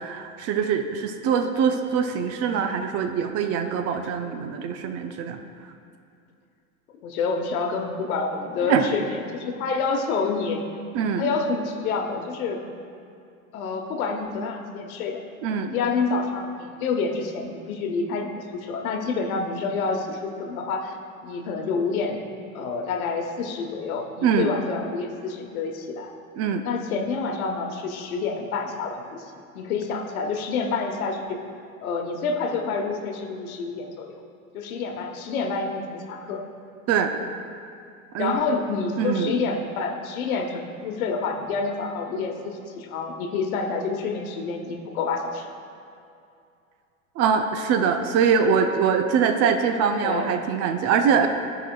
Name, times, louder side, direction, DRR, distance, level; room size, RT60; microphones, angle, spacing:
voice 1, 0.0-5.4 8.7-8.9 10.9-11.3 15.4-15.7 24.2-24.5 26.4-26.6 36.9-37.1 38.1-38.4 39.0-39.3 47.2-51.3, right 6 dB, 35° right, 6 dB, 0.5 m, -23 dB
voice 2, 7.0-10.6 11.2-12.6 13.5-15.2 15.6-21.0 21.2-22.2 22.5-26.1 26.6-31.4 31.8-34.1 34.5-36.4 38.2-45.5 50.0-50.3, left 4 dB, 75° left, 4 dB, 1.0 m, -28 dB
14.5 x 4.9 x 2.3 m, 2.5 s
hypercardioid pair, 105°, 43 cm